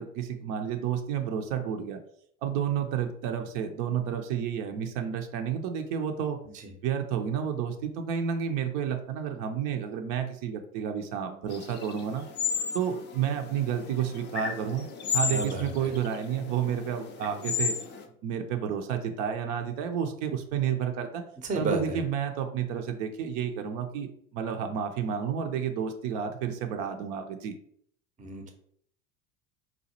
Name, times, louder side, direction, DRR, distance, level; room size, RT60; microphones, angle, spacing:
voice 1, 0.0-2.0 2.4-6.4 6.8-12.2 12.7-14.9 15.1-17.7 18.2-21.2 21.5-24.1 24.3-27.5, right 8 dB, 55° right, 5 dB, 0.6 m, -30 dB
sound 1, 11.5-18.0, left 6 dB, 25° left, 0.4 m, -34 dB
voice 2, 15.3-15.7 21.4-22.0 28.2-28.5, right 2 dB, 20° right, 4 dB, 0.6 m, -31 dB
4.0 x 2.2 x 2.8 m, 0.65 s
hypercardioid pair, 90°, 44 cm